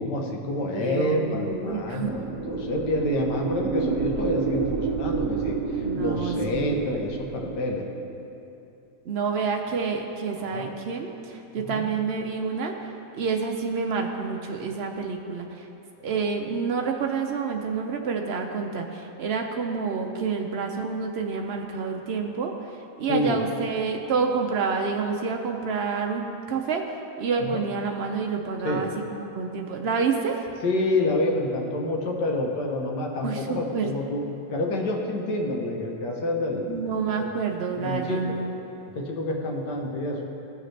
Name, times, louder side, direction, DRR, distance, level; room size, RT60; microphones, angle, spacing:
voice 1, 0.0-7.8 10.5-10.7 11.7-11.9 16.1-16.2 23.1-23.4 27.4-27.6 28.6-28.8 30.6-34.2 34.5-37.3 37.8-38.4 38.9-40.2, left 2 dB, 85° left, 1 dB, 1.6 m, -28 dB
voice 2, 0.7-2.1 5.8-6.8 9.1-15.7 16.0-26.2 26.5-26.8 27.2-30.4 33.2-33.9 36.7-38.5, right 5 dB, 85° right, 2 dB, 0.5 m, -28 dB
sound 1, 1.5-7.7, right 6 dB, 65° right, 0.9 m, -29 dB
16.5 x 6.5 x 3.2 m, 2.8 s
omnidirectional pair, 1.8 m